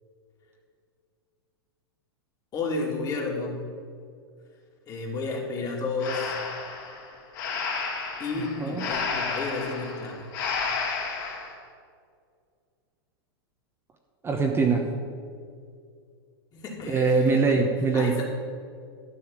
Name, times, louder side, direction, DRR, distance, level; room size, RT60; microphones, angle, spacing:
voice 1, 2.5-3.7 4.9-6.4 8.2-10.3 16.5-17.4 17.9-18.2, left 3 dB, 30° left, -1 dB, 2.8 m, -31 dB
Breathing, 6.0-11.5, left 5 dB, 55° left, 3.0 m, -32 dB
voice 2, 14.2-14.9 16.9-18.2, right 4 dB, 20° right, 2 dB, 1.1 m, -23 dB
12.5 x 5.6 x 8.8 m, 2.2 s
hypercardioid pair, 120°, 13 cm